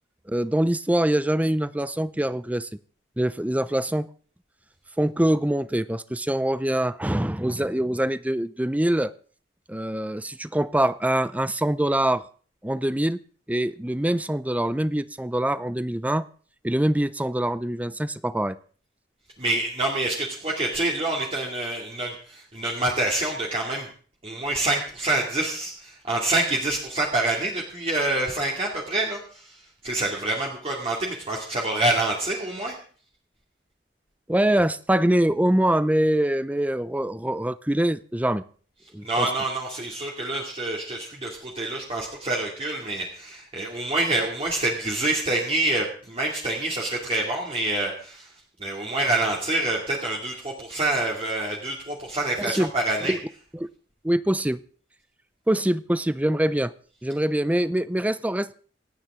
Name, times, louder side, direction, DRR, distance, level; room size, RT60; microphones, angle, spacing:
voice 1, 0.3-2.8 3.2-4.1 5.0-9.1 9.7-12.3 12.6-13.2 13.5-16.3 16.6-18.6 34.3-38.4 38.9-39.3 52.4-52.7 53.0-53.2 53.5-53.7 54.0-54.6 55.5-56.7 57.0-58.5, right 1 dB, 10° right, 15 dB, 0.6 m, -24 dB
voice 2, 19.4-23.9 24.2-29.6 29.8-32.7 39.0-48.3 48.6-53.2, right 2 dB, 35° right, -2 dB, 2.5 m, -26 dB
27.5 x 9.2 x 3.8 m, 0.44 s
head